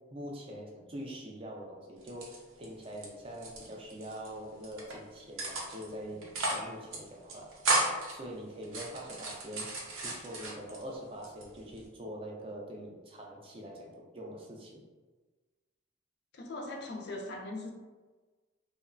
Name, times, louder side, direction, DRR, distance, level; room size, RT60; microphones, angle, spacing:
voice 1, 0.1-7.5 8.1-14.8, equal, 25° right, -1 dB, 0.4 m, -44 dB
sound 1, 2.0-3.1 3.3-4.3 4.6-4.9 5.4-5.9 6.2-6.7 6.9-7.0 7.3-8.1 8.6-10.8 11.2-11.9, right 2 dB, 80° right, 0.5 m, -34 dB
voice 2, 16.3-17.7, left 2 dB, 50° left, 2 dB, 0.4 m, -40 dB
2.9 x 2.0 x 2.4 m, 1.3 s
head